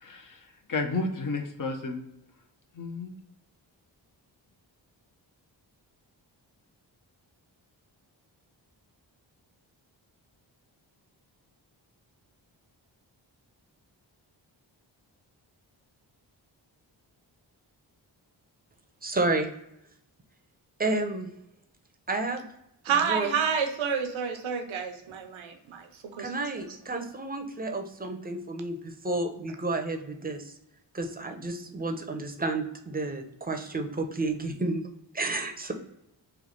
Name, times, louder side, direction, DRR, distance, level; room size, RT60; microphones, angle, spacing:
voice 1, 0.0-0.4 0.7-2.0 2.8-3.2, left 3 dB, 45° left, 0.8 m, -31 dB
voice 2, 19.0-19.5 20.8-21.3 22.1-22.5 23.0-23.4 26.2-30.5 30.9-34.8 35.1-35.7, right 2 dB, 20° right, 0.7 m, -31 dB
voice 3, 22.8-25.9 26.2-26.3, right 6 dB, 80° right, 0.7 m, -29 dB
3.3 x 2.4 x 3.7 m
cardioid pair, 45°, 47 cm